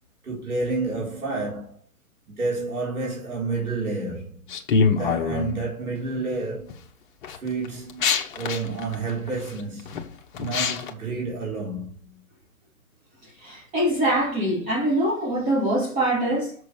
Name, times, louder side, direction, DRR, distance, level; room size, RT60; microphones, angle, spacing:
voice 1, 0.2-1.8 2.4-4.4 5.0-6.7 7.4-8.1 8.3-9.9 10.4-12.2, right 3 dB, 85° right, 4.5 m, -29 dB
sound 1, 4.5-5.6 6.3-6.7 7.2-10.9, left 5 dB, 35° left, 1.3 m, -25 dB
voice 2, 13.4-16.5, right 1 dB, 20° right, 2.1 m, -23 dB
7.1 x 6.7 x 4.9 m
hypercardioid pair, 145°, 43 cm